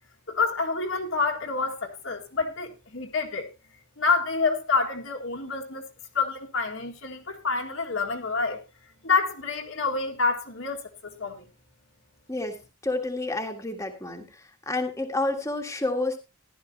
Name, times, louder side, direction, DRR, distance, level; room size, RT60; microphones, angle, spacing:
voice 1, 0.3-3.5 4.0-5.9 6.1-8.6 9.0-11.4, left 4 dB, 60° left, 2.0 m, -27 dB
voice 2, 12.8-16.2, left 2 dB, 15° left, 1.7 m, -29 dB
15.0 x 12.0 x 2.8 m
head